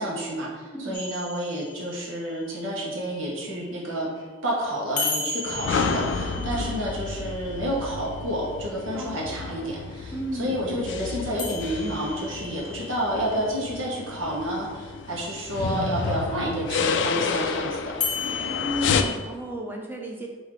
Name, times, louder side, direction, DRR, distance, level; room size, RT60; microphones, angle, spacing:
voice 1, 0.0-17.9, equal, 85° right, -4 dB, 1.1 m, -30 dB
voice 2, 0.7-1.0 6.4-6.8 8.9-9.5 10.1-10.6 18.5-20.3, equal, 10° right, 0 dB, 0.6 m, -34 dB
sound 1, 0.9-3.8 5.0-9.1 11.4-14.5 18.0-19.1, left 4 dB, 45° left, 0.7 m, -35 dB
sound 2, 5.5-19.0, left 5 dB, 65° left, 0.3 m, -30 dB
3.9 x 2.7 x 4.6 m, 1.4 s
head